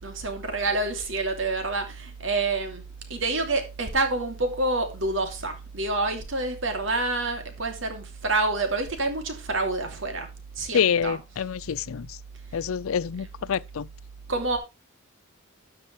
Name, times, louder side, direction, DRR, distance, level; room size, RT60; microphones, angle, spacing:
voice 1, 0.0-2.8 3.1-10.3 10.5-11.2 13.2-13.3 14.3-14.6, right 2 dB, 60° right, 2.7 m, -27 dB
voice 2, 10.7-12.2 12.5-13.9, left 7 dB, 75° left, 0.4 m, -26 dB
13.0 x 6.8 x 3.2 m
head